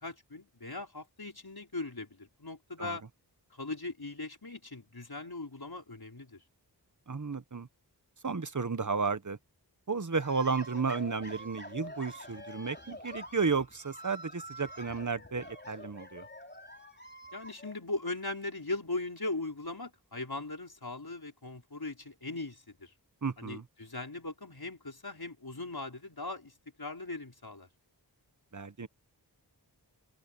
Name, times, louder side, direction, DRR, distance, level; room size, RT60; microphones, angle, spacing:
voice 1, 0.0-3.0 3.5-6.4 17.3-22.9 23.4-26.5 26.8-27.7, left 2 dB, 60° left, 4.9 m, -39 dB
voice 2, 7.1-7.7 8.2-9.4 9.9-16.2 23.2-23.7 28.5-28.9, right 5 dB, 45° right, 1.1 m, -33 dB
sound 1, 10.2-17.7, equal, 25° left, 3.4 m, -47 dB
wide cardioid pair, 45°, 42 cm